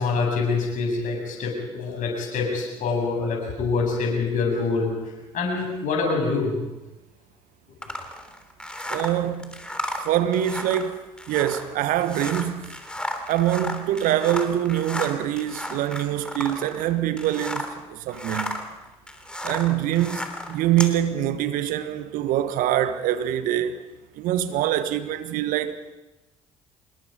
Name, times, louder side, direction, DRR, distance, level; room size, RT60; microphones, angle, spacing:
voice 1, 0.0-4.9 5.3-6.6, left 4 dB, 60° left, 7.9 m, -25 dB
sound 1, 7.8-17.8 18.1-21.0, left 1 dB, 5° left, 3.4 m, -34 dB
voice 2, 8.9-9.6 10.0-12.8 13.3-18.6 19.4-23.8 24.1-25.8, right 12 dB, 65° right, 1.4 m, -24 dB
26.0 x 21.0 x 5.4 m
hypercardioid pair, 50°, 15 cm